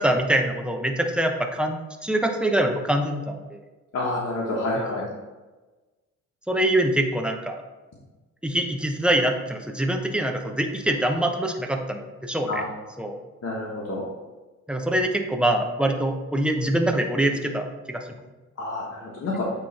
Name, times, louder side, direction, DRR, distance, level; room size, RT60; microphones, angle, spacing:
voice 1, 0.0-3.6 4.7-5.1 6.5-7.6 8.4-12.6 13.0-13.2 14.7-18.0, right 1 dB, 5° right, 3 dB, 0.8 m, -24 dB
voice 2, 3.9-5.0 12.5-12.7 13.4-14.0 18.6-19.4, left 2 dB, 55° left, -5 dB, 1.4 m, -28 dB
8.4 x 3.2 x 4.2 m, 1.2 s
cardioid pair, 90°, 30 cm